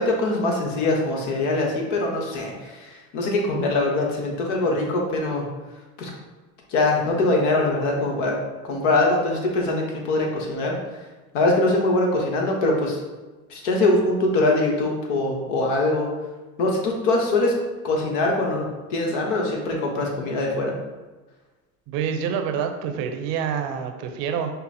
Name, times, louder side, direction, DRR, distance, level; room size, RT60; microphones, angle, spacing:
voice 1, 0.0-5.5 6.0-6.1 6.7-8.4 8.6-10.8 11.3-13.0 13.5-16.1 16.6-17.5 17.8-18.6 18.9-20.7, left 2 dB, 85° left, 0 dB, 1.1 m, -22 dB
voice 2, 21.9-24.5, right 7 dB, 70° right, 6 dB, 0.7 m, -27 dB
5.4 x 2.0 x 4.2 m, 1.2 s
supercardioid pair, 90°, 36 cm